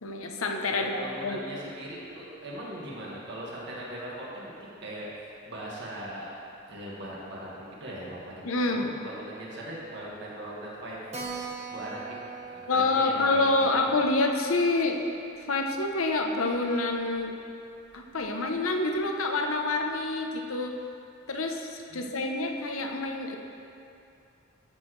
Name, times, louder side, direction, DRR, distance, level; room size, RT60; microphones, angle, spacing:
voice 1, 0.0-1.4 8.4-8.9 12.7-15.1 15.5-17.3 17.9-20.7 21.3-23.4, left 2 dB, 75° left, 3 dB, 0.8 m, -27 dB
voice 2, 0.7-6.3 6.7-11.0 11.4-12.1 12.5-13.7 21.9-22.4, right 1 dB, 55° right, -5 dB, 1.8 m, -40 dB
Keyboard (musical), 11.1-16.2 16.5-16.6 16.8-16.9 17.2-17.3 17.9-18.2, right 4 dB, 30° right, 1.1 m, -43 dB
13.0 x 6.2 x 3.2 m, 2.6 s
head